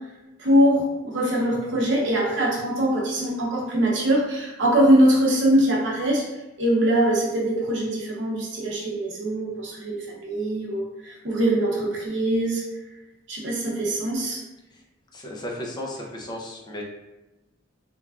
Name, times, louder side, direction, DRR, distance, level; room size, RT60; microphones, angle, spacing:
voice 1, 0.4-6.2 6.6-12.6 13.3-14.4, right 1 dB, 70° right, -3 dB, 0.8 m, -22 dB
voice 2, 15.1-16.8, left 1 dB, 20° left, -2 dB, 0.5 m, -34 dB
3.3 x 2.2 x 2.3 m, 1.0 s
head